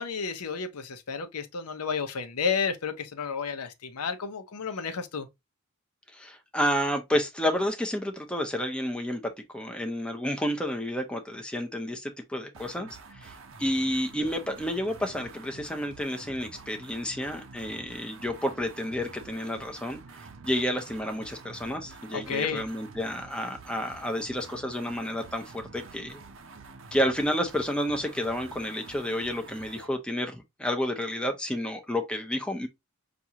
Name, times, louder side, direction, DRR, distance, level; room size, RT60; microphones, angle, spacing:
voice 1, 0.0-5.3 22.1-22.6, left 6 dB, 85° left, 0.7 m, -31 dB
voice 2, 6.1-20.0 20.4-26.2 26.9-32.7, equal, 5° left, 0.6 m, -30 dB
sound 1, 12.5-29.9, right 4 dB, 60° right, 0.6 m, -48 dB
5.9 x 2.5 x 2.8 m
head